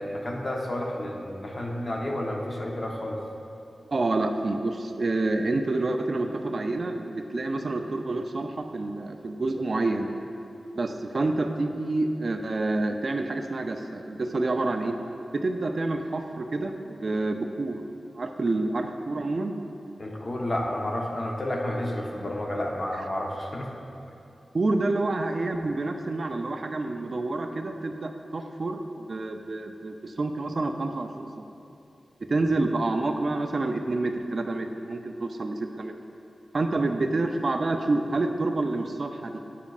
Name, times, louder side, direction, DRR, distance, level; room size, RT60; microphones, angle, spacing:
voice 1, 0.0-3.2 20.0-23.7, left 1 dB, 45° left, -1 dB, 0.9 m, -31 dB
voice 2, 3.9-10.1 10.7-15.0 15.3-17.8 18.2-19.5 23.0-23.1 24.5-31.5 32.3-35.9 36.5-39.4, right 2 dB, 55° right, 5 dB, 0.4 m, -28 dB
9.1 x 7.0 x 2.4 m, 2.7 s
wide cardioid pair, 70°, 0 cm